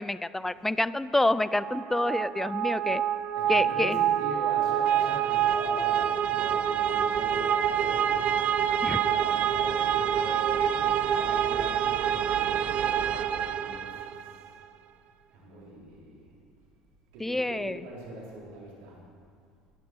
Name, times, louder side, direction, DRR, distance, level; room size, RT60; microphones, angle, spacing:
voice 1, 0.0-3.0 3.5-4.0 8.8-9.0 17.2-17.8, left 2 dB, 10° left, 16 dB, 0.5 m, -27 dB
sound 1, 1.5-14.3, right 9 dB, 55° right, 0.6 m, -27 dB
voice 2, 2.7-14.5 15.3-16.3 17.1-19.0, right 2 dB, 80° right, -4 dB, 4.2 m, -42 dB
21.5 x 7.2 x 6.2 m, 2.2 s
supercardioid pair, 85°, 3 cm